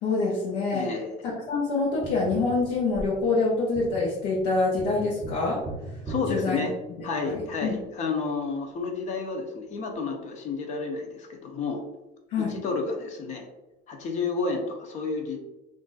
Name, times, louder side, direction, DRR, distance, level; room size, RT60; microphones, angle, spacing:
voice 1, 0.0-0.9 1.2-5.6 5.9-6.0 6.3-6.7 7.0-7.8 12.3-12.5, left 3 dB, 80° left, -4 dB, 0.9 m, -26 dB
voice 2, 0.7-1.1 6.1-6.7 7.0-11.8 12.4-13.5 13.9-15.4, left 4 dB, 35° left, 3 dB, 0.6 m, -30 dB
Tap, 2.0-7.3 9.9-10.0, right 2 dB, 15° right, 0.5 m, -40 dB
3.1 x 2.5 x 3.8 m, 0.98 s
cardioid pair, 170°, 20 cm